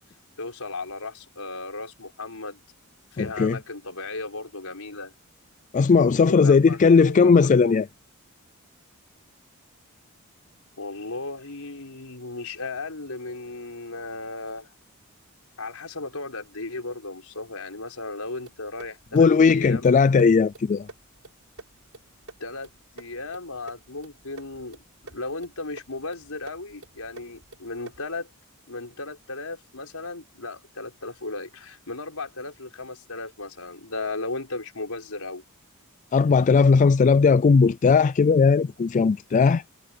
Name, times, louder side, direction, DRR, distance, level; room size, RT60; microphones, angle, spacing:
voice 1, 0.4-2.6 3.1-5.1 6.2-7.8 10.8-14.7 15.6-19.9 22.4-22.7 23.0-24.8 25.0-28.3 28.7-35.4, left 3 dB, 75° left, 5.2 m, -35 dB
voice 2, 3.2-3.6 5.7-7.9 19.1-20.9 36.1-39.6, left 5 dB, 35° left, 0.3 m, -18 dB
sound 1, 18.4-28.2, right 2 dB, 65° right, 6.7 m, -49 dB
head